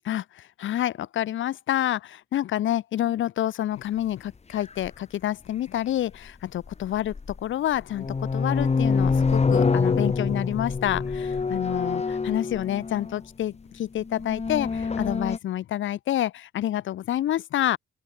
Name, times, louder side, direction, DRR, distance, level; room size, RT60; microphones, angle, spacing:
voice 1, 0.0-7.1 7.4-17.8, left 12 dB, 75° left, 4.1 m, -28 dB
sound 1, 4.8-4.9 6.7-7.4 7.8-13.2 14.0-15.4, left 4 dB, 35° left, 6.1 m, -25 dB
open air
cardioid pair, 90°, 20 cm